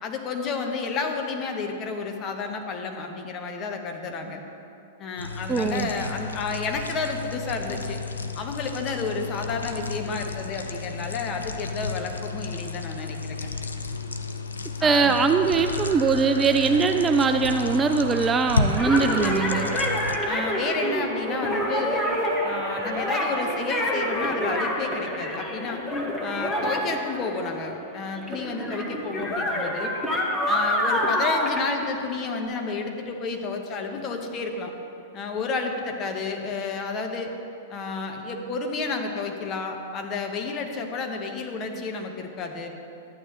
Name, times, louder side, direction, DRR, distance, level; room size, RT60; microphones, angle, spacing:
voice 1, 0.0-4.4 5.0-8.0 8.3-13.5 14.8-15.1 20.3-22.1 22.4-25.8 26.2-29.9 30.5-34.7 35.1-37.3 37.7-42.7, left 4 dB, 35° left, 3 dB, 1.1 m, -31 dB
sound 1, 5.2-20.2, left 4 dB, 85° left, 0.5 m, -32 dB
voice 2, 5.5-5.9 14.8-19.7, right 4 dB, 20° right, 7 dB, 0.4 m, -21 dB
sound 2, 15.2-26.5, right 5 dB, 65° right, 0.8 m, -38 dB
sound 3, 18.7-27.9 28.2-32.4, left 1 dB, 10° left, 1.3 m, -27 dB
12.5 x 9.2 x 3.0 m, 2.7 s
hypercardioid pair, 100°, 0 cm